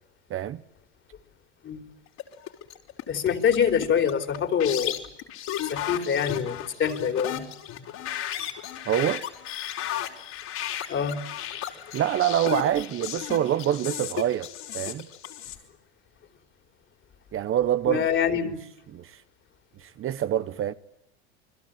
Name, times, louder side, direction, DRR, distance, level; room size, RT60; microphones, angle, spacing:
voice 1, 0.3-0.6 8.9-9.2 11.9-15.1 17.3-18.1 18.4-18.5 18.9-19.2 19.8-20.7, right 11 dB, 40° right, 1.2 m, -26 dB
sound 1, 2.1-15.6, left 11 dB, 55° left, 4.9 m, -34 dB
voice 2, 3.1-5.0 5.7-7.5 10.9-11.2 17.9-18.6, left 7 dB, 35° left, 4.0 m, -25 dB
29.5 x 22.0 x 9.2 m
hypercardioid pair, 95°, 33 cm